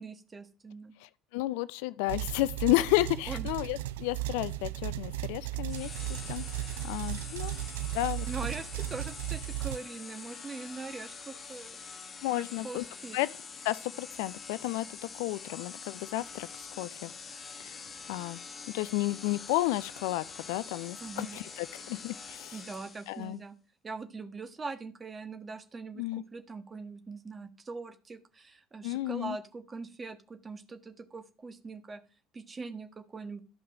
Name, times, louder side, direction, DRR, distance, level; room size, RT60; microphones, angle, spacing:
voice 1, 0.0-0.9 3.3-3.5 8.3-11.8 12.4-13.2 21.0-21.4 22.5-23.5 23.8-32.0 32.3-33.4, right 4 dB, 25° right, 1.5 m, -42 dB
voice 2, 1.0-7.5 7.9-8.3 12.2-12.8 13.1-13.3 13.6-14.9 15.1-17.1 17.6-17.8 18.1-18.4 18.7-22.6 23.1-23.4 26.0-26.2 28.8-29.4, left 18 dB, 65° left, 0.4 m, -32 dB
sound 1, 2.1-9.8, right 15 dB, 70° right, 0.4 m, -36 dB
sound 2, 5.7-23.3, left 5 dB, 35° left, 1.5 m, -45 dB
13.0 x 5.4 x 5.0 m
figure-of-eight pair, 60°, 0 cm